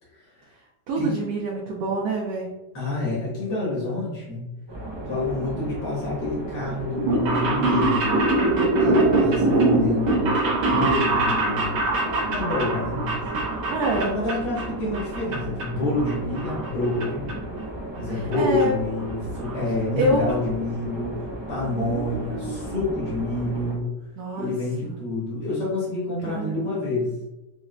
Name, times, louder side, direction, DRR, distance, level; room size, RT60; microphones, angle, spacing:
voice 1, 0.1-0.5 1.0-1.2 2.7-4.5 5.1-8.1 8.8-10.4 10.7-13.2 13.9-17.3 18.0-23.9 24.4-27.1, left 2 dB, 85° left, -7 dB, 2.1 m, -28 dB
voice 2, 0.9-2.5 13.7-14.2 18.1-18.7 20.0-20.3 21.8-22.8 24.2-24.5 24.8-25.0 26.2-26.7, right 1 dB, 70° right, -1 dB, 1.0 m, -27 dB
sound 1, 4.7-23.8, right 2 dB, 35° right, 0.4 m, -35 dB
sound 2, 6.9-14.7 14.9-15.6 16.0-17.0 17.3-17.4 18.3-18.4 18.6-18.7 19.0-19.1 19.3-19.6 20.0-20.1 20.3-20.4, right 2 dB, 85° right, 1.5 m, -23 dB
6.1 x 2.1 x 2.5 m, 1.0 s
omnidirectional pair, 1.8 m